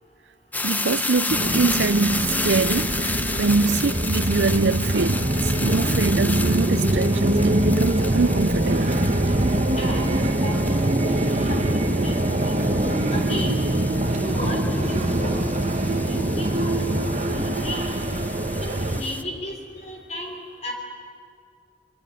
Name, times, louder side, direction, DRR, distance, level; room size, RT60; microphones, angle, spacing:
sound 1, 0.5-19.2, left 2 dB, 10° left, 0.9 m, -32 dB
voice 1, 0.6-2.9 3.4-9.1, right 4 dB, 80° right, 0.6 m, -24 dB
sound 2, 1.3-19.0, right 1 dB, 40° right, 1.5 m, -23 dB
voice 2, 9.8-10.6 11.2-12.1 12.4-13.6 14.2-15.5 16.0-16.8 17.3-17.9 18.6-20.7, left 1 dB, 40° left, 3.3 m, -34 dB
28.0 x 22.5 x 9.3 m
head